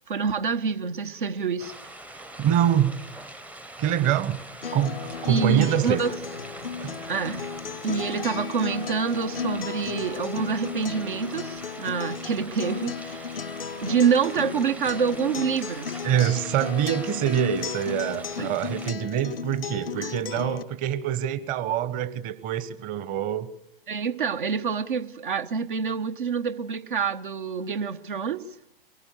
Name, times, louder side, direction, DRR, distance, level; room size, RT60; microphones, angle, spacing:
voice 1, 0.1-1.7 5.3-6.2 7.1-7.5 7.8-13.4 13.8-16.0 18.4-18.5 20.0-20.1 23.9-28.5, right 6 dB, 60° right, 11 dB, 1.1 m, -27 dB
sound 1, 1.6-18.9, right 1 dB, 5° right, 0.7 m, -43 dB
voice 2, 2.4-3.1 3.8-6.0 6.8-7.0 16.0-23.5, right 10 dB, 30° right, 14 dB, 1.2 m, -25 dB
Acoustic guitar, 4.6-20.6, left 6 dB, 75° left, 0.7 m, -34 dB
24.0 x 19.5 x 6.6 m, 0.74 s
figure-of-eight pair, 105°, 29 cm